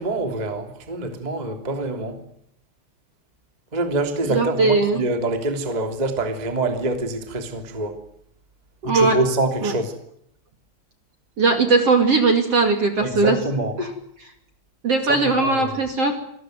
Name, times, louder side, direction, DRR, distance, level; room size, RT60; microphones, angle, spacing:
voice 1, 0.0-2.2 3.7-8.0 8.8-9.9 13.0-13.8 15.1-15.7, right 2 dB, 10° right, 2.1 m, -25 dB
voice 2, 4.2-5.0 8.8-9.2 9.6-9.7 11.4-13.4 13.8-13.9 14.8-16.2, right 3 dB, 40° right, 2.8 m, -19 dB
27.5 x 20.0 x 9.4 m
omnidirectional pair, 5.2 m